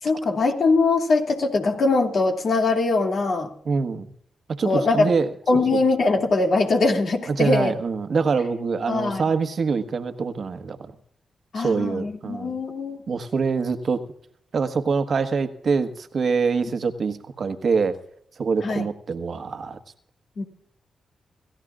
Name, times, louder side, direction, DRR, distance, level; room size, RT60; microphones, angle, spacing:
voice 1, 0.0-3.5 4.6-5.1 5.5-7.7 8.9-9.2 11.5-13.0 18.6-18.9 20.4-20.5, left 3 dB, 65° left, 1 dB, 2.5 m, -22 dB
voice 2, 3.6-4.1 4.6-5.3 5.7-5.8 7.3-10.8 11.5-12.6 13.1-14.0 14.5-18.0 18.4-19.8, right 5 dB, 65° right, 9 dB, 1.3 m, -24 dB
28.0 x 14.0 x 2.5 m, 0.67 s
supercardioid pair, 40°, 0 cm